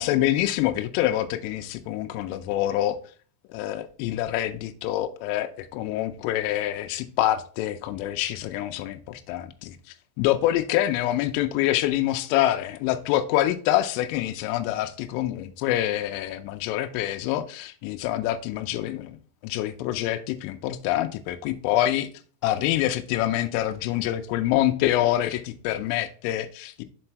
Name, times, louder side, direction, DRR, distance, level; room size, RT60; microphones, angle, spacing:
voice 1, 0.0-3.0 3.5-9.8 10.2-19.2 19.4-22.1 22.4-26.8, left 13 dB, 85° left, 3.1 m, -26 dB
6.9 x 4.0 x 4.4 m
omnidirectional pair, 5.8 m